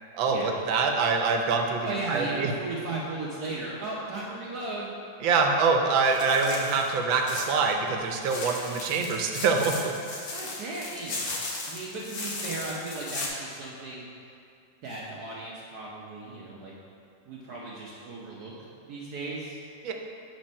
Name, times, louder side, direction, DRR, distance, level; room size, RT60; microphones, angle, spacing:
voice 1, 0.1-2.5 5.2-9.9 19.8-19.9, right 4 dB, 85° right, 3 dB, 1.5 m, -25 dB
voice 2, 1.8-4.9 10.3-11.3 11.7-14.1 14.8-16.7 17.2-18.5 18.8-19.6, right 2 dB, 60° right, -5 dB, 1.3 m, -36 dB
sound 1, 6.1-7.7 8.1-13.3, left 2 dB, 55° left, 1.3 m, -36 dB
7.7 x 4.3 x 5.3 m, 2.4 s
omnidirectional pair, 2.0 m